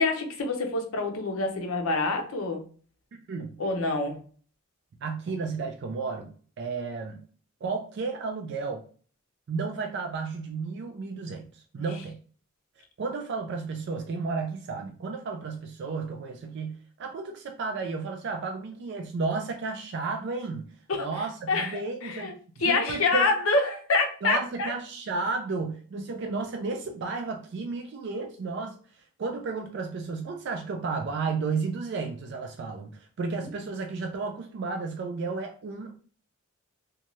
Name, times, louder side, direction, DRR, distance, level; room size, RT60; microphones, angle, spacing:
voice 1, 0.0-2.6 3.6-4.2 11.8-11.9 20.9-22.3 22.6-24.7 33.4-33.5, left 3 dB, 75° left, 4 dB, 0.6 m, -27 dB
voice 2, 3.1-3.6 5.0-7.2 7.6-8.8 9.5-12.2 12.8-23.3 24.2-36.0, right 4 dB, 55° right, 4 dB, 0.3 m, -33 dB
2.6 x 2.2 x 3.0 m, 0.43 s
head